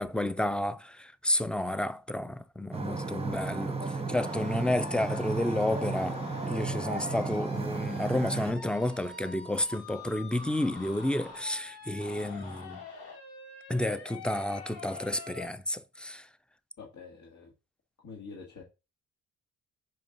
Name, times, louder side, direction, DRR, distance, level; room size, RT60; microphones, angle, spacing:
voice 1, 0.0-12.8 13.7-16.3, left 1 dB, 5° left, 0.4 m, -31 dB
aereo over boat, 2.7-8.5, right 4 dB, 15° right, 1.1 m, -34 dB
sound 1, 4.1-15.5, left 5 dB, 85° left, 3.0 m, -45 dB
voice 2, 16.8-17.5 18.0-18.6, left 4 dB, 50° left, 1.7 m, -46 dB
5.3 x 5.2 x 3.9 m
cardioid pair, 85°, 37 cm